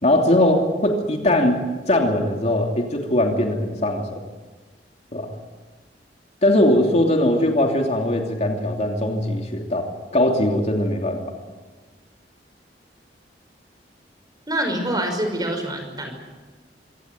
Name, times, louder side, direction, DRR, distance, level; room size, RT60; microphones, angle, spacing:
voice 1, 0.0-1.6 1.9-4.0 5.1-5.3 6.4-11.2, left 1 dB, 40° left, 2 dB, 2.9 m, -20 dB
voice 2, 14.5-16.1, right 1 dB, 25° right, 5 dB, 5.6 m, -25 dB
25.5 x 17.5 x 9.4 m, 1.3 s
head